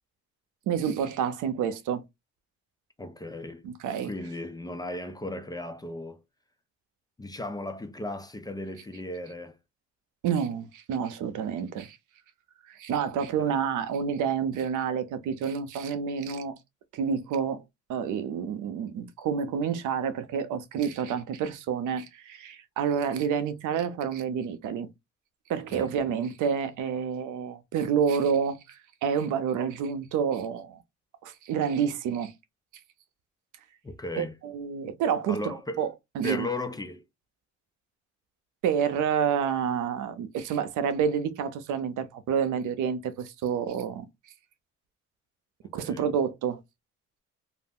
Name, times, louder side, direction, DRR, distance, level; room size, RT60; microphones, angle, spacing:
voice 1, 0.7-2.0 3.6-4.1 10.2-12.0 12.7-16.6 16.9-17.6 17.9-24.9 25.5-30.8 31.2-32.3 34.2-35.9 36.2-36.5 38.6-44.1 45.7-46.6, right 7 dB, 80° right, 0.6 m, -29 dB
voice 2, 3.0-3.7 4.0-6.2 7.2-9.6 13.2-13.6 25.7-25.9 33.8-34.4 35.3-35.9 36.2-37.0 45.6-46.1, left 1 dB, 15° left, 0.4 m, -36 dB
2.4 x 2.0 x 3.5 m
cardioid pair, 90°, 30 cm